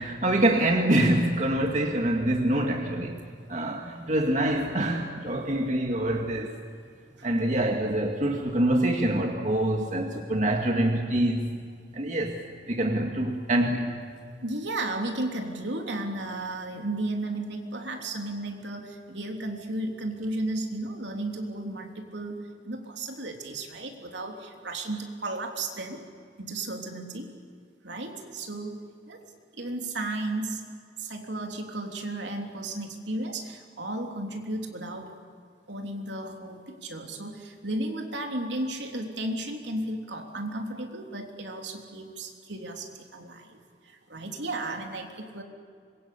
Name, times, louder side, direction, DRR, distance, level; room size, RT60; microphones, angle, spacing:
voice 1, 0.0-3.2 3.5-6.6 7.2-11.6 11.9-12.4 12.7-13.9, right 1 dB, 40° right, 2 dB, 2.0 m, -25 dB
voice 2, 14.4-26.0 26.4-27.3 27.8-28.8 29.1-29.2 29.5-30.6 31.0-35.2 35.7-43.6 43.8-45.4, right 2 dB, 75° right, 3 dB, 3.4 m, -34 dB
26.0 x 23.0 x 8.5 m, 2.2 s
head